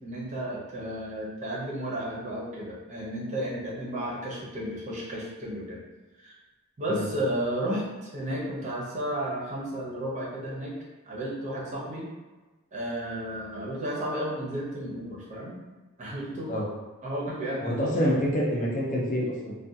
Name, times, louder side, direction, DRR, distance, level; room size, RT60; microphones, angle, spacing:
voice 1, 0.0-5.8 6.2-6.3 6.8-10.7 11.1-12.1 12.7-15.6 16.0-16.5 17.0-18.2, right 1 dB, 35° right, -5 dB, 0.6 m, -33 dB
voice 2, 17.6-19.6, equal, 35° left, -4 dB, 0.5 m, -27 dB
2.3 x 2.2 x 2.7 m, 1.2 s
head